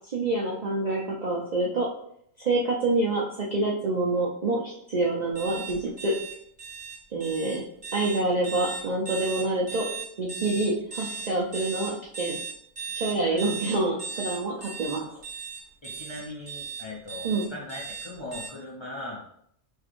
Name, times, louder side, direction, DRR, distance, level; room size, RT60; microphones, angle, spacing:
voice 1, 0.1-1.9 2.4-6.1 7.1-7.6 7.9-9.9 10.2-12.4 12.9-15.1 17.2-17.4, right 2 dB, 50° right, -4 dB, 0.5 m, -27 dB
sound 1, 5.3-18.5, right 5 dB, 25° right, 0.9 m, -37 dB
voice 2, 13.1-13.5 15.8-19.2, left 1 dB, 30° left, -5 dB, 0.6 m, -39 dB
4.4 x 3.3 x 2.5 m, 0.68 s
omnidirectional pair, 1.4 m